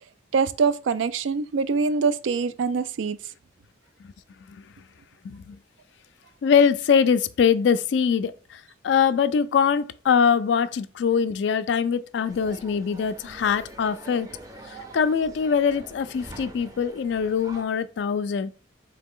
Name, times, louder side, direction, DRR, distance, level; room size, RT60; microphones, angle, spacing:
voice 1, 0.3-3.2, right 5 dB, 75° right, 0.3 m, -24 dB
voice 2, 5.2-5.6 6.4-14.3 14.9-18.5, left 6 dB, 65° left, 0.3 m, -23 dB
sound 1, 12.2-17.6, right 2 dB, 20° right, 0.5 m, -44 dB
3.8 x 2.8 x 3.7 m
head